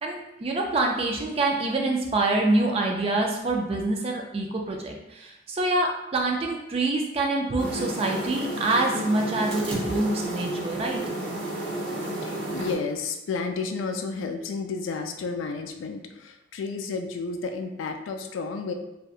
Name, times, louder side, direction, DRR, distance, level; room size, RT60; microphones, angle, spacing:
voice 1, 0.0-11.0, right 2 dB, 30° right, 1 dB, 0.3 m, -26 dB
sound 1, 7.6-12.8, right 1 dB, 70° right, 1.0 m, -32 dB
voice 2, 12.1-18.7, left 4 dB, 90° left, 6 dB, 0.3 m, -32 dB
2.7 x 2.2 x 2.3 m, 0.92 s
head